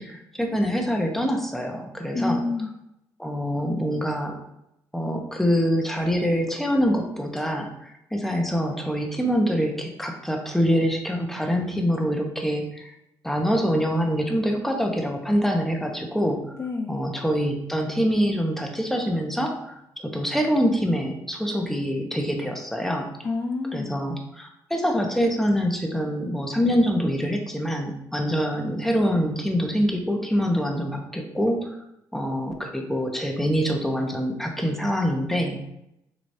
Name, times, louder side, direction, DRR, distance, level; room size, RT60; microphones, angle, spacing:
voice 1, 0.0-2.4 3.2-4.4 4.9-12.9 13.2-16.4 16.9-23.1 23.7-31.6 32.1-35.6, equal, 5° left, 2 dB, 1.0 m, -25 dB
voice 2, 2.1-2.7 16.6-17.0 23.2-24.0, left 3 dB, 30° left, 2 dB, 0.4 m, -28 dB
6.4 x 3.1 x 2.7 m, 0.84 s
cardioid pair, 80°, 8 cm